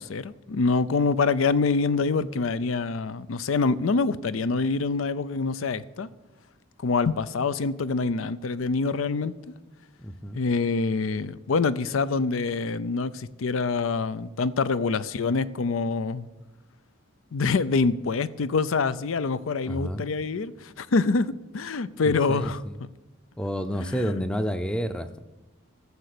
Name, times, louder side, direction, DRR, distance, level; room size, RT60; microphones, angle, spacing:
voice 1, 0.0-6.1 6.8-9.3 10.3-16.3 17.3-22.6 23.8-24.3, left 4 dB, 85° left, 0.5 m, -25 dB
voice 2, 10.0-10.4 19.6-20.0 22.0-22.8 23.4-25.2, equal, 5° left, 0.5 m, -30 dB
14.0 x 6.8 x 6.7 m
head